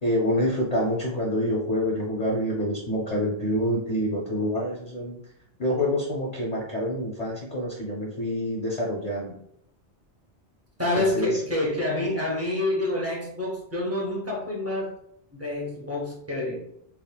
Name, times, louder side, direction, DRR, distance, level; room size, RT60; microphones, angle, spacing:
voice 1, 0.0-5.2 5.6-9.4 10.9-11.4, equal, 50° left, -2 dB, 0.5 m, -27 dB
voice 2, 10.8-14.9 15.3-16.7, left 1 dB, 25° right, -2 dB, 0.3 m, -27 dB
3.5 x 2.1 x 2.2 m, 0.72 s
omnidirectional pair, 1.1 m